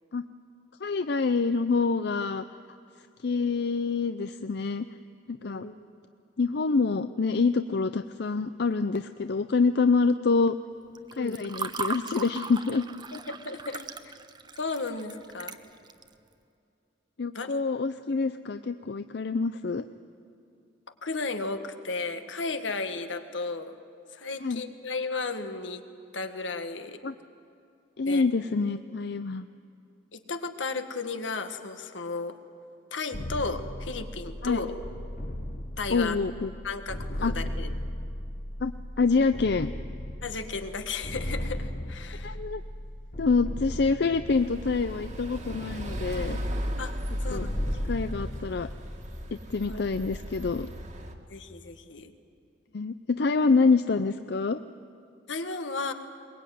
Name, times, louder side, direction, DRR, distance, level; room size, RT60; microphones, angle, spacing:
voice 1, 0.8-2.4 3.2-4.9 5.3-5.7 6.4-10.6 11.1-12.8 17.2-19.9 24.4-24.6 27.0-27.1 28.0-29.5 34.4-34.6 35.9-36.5 37.2-37.3 38.6-39.7 42.2-42.6 43.2-46.4 47.3-47.5 47.9-48.7 49.5-50.7 52.7-54.6, left 4 dB, 60° left, 10 dB, 0.5 m, -26 dB
voice 2, 5.4-5.7 11.2-11.4 13.1-13.9 14.6-15.6 17.3-17.5 21.0-23.8 24.1-25.8 26.1-27.0 28.1-28.3 30.1-32.4 32.9-34.7 35.8-36.2 36.6-37.7 40.2-42.4 46.8-46.9 47.2-47.5 49.7-49.8 51.3-52.1 55.3-55.9, left 3 dB, 80° left, 7 dB, 1.6 m, -34 dB
Water / Fill (with liquid), 11.0-16.1, right 4 dB, 25° right, 0.8 m, -38 dB
sound 1, 33.1-50.8, left 1 dB, 45° left, 1.1 m, -37 dB
sound 2, 44.3-51.1, equal, 40° right, 1.9 m, -36 dB
22.5 x 22.0 x 9.3 m, 2.5 s
head